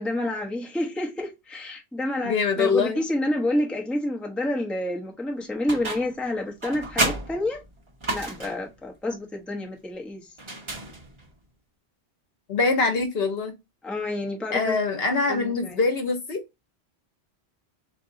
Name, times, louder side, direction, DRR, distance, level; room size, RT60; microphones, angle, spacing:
voice 1, 0.0-7.6 8.1-10.3 13.8-14.8 15.3-15.8, left 1 dB, ahead, 0.7 m, -29 dB
voice 2, 2.2-3.0 12.5-13.5 14.5-16.4, left 4 dB, 65° left, 1.1 m, -24 dB
sound 1, 5.7-6.2 6.6-8.7 10.4-11.3, right 2 dB, 30° right, 0.8 m, -30 dB
3.6 x 2.6 x 3.8 m
omnidirectional pair, 1.1 m